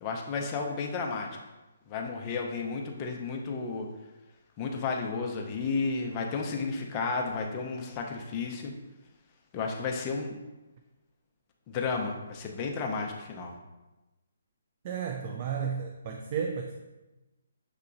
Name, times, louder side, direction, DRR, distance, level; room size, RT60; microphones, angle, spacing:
voice 1, 0.0-1.3 1.9-3.9 4.6-8.7 9.5-10.3 11.7-13.6, left 4 dB, 25° left, 1 dB, 0.6 m, -32 dB
voice 2, 14.8-16.8, right 6 dB, 35° right, 3 dB, 0.3 m, -33 dB
6.6 x 2.9 x 2.5 m, 1.1 s
hypercardioid pair, 155°, 0 cm